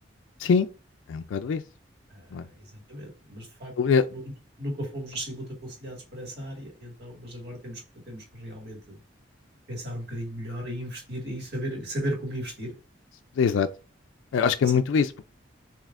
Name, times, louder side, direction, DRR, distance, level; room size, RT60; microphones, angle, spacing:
voice 1, 1.1-1.6 2.3-2.4 3.8-4.0 13.4-13.7 14.3-15.3, left 6 dB, 85° left, 0.3 m, -23 dB
voice 2, 2.1-2.4 2.7-4.2 4.6-9.0 9.7-12.7, equal, 55° right, 1.9 m, -36 dB
7.3 x 2.9 x 2.5 m
head